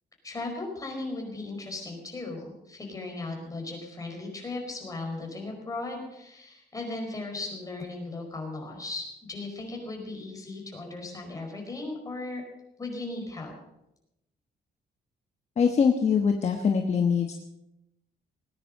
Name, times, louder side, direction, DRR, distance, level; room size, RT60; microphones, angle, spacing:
voice 1, 0.2-12.4 12.8-13.5, left 2 dB, 20° left, 1 dB, 4.9 m, -37 dB
voice 2, 15.6-17.3, left 6 dB, 40° left, 5 dB, 1.2 m, -23 dB
19.0 x 10.0 x 6.6 m, 0.87 s
cardioid pair, 135°, 17 cm